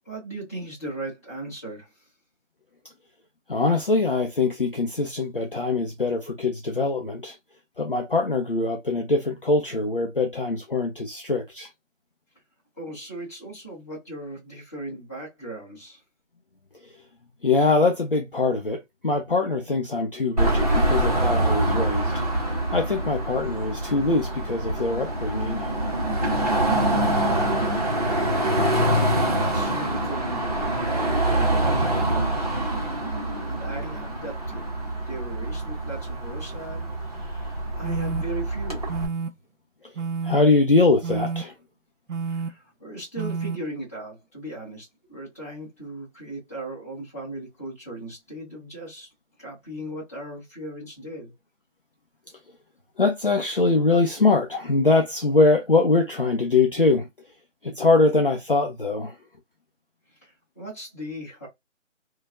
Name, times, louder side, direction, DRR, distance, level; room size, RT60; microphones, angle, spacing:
voice 1, 0.0-1.9 12.7-16.0 28.8-32.3 33.5-34.7 35.1-38.9 42.3-49.1 49.4-51.3 60.2-61.5, right 1 dB, 10° left, 1.3 m, -37 dB
voice 2, 3.5-7.4 7.8-11.7 16.8-16.9 17.4-22.2 22.7-25.7 32.8-33.0 39.8-39.9 40.2-41.5 53.0-57.1 57.6-59.2, left 3 dB, 45° left, 0.5 m, -23 dB
Car passing by / Traffic noise roadway noise / Engine, 20.4-39.1, right 1 dB, 30° right, 0.8 m, -25 dB
sound 1, 37.8-38.2 38.9-39.3 40.0-40.4 41.0-41.4 42.1-42.5 43.2-43.6, right 5 dB, 85° right, 0.6 m, -29 dB
3.1 x 2.2 x 2.4 m
figure-of-eight pair, 165°, 38 cm